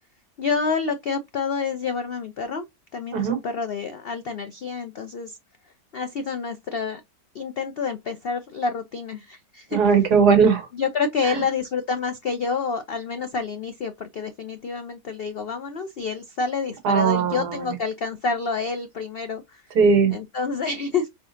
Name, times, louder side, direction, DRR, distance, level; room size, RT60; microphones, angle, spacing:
voice 1, 0.4-2.6 2.9-5.4 5.9-7.0 7.3-9.8 10.7-19.6 20.1-21.1, left 5 dB, 85° left, 0.5 m, -28 dB
voice 2, 9.7-10.7 16.8-17.7 19.8-20.1, right 5 dB, 70° right, 1.7 m, -18 dB
4.9 x 3.7 x 2.6 m
omnidirectional pair, 1.8 m